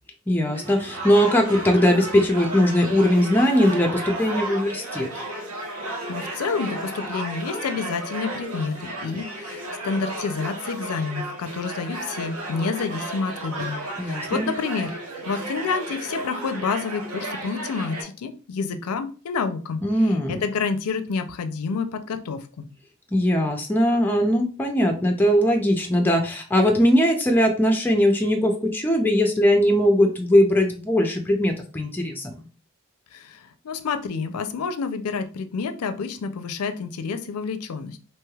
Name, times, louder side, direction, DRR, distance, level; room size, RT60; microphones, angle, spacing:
voice 1, 0.3-5.1 14.0-14.5 19.8-20.4 23.1-32.3, equal, 10° left, 2 dB, 0.3 m, -20 dB
sound 1, 0.5-18.0, right 1 dB, 90° right, 0.9 m, -33 dB
voice 2, 6.1-14.9 15.3-22.7 33.1-38.0, left 5 dB, 90° left, 9 dB, 0.4 m, -29 dB
3.2 x 3.0 x 2.3 m, 0.38 s
head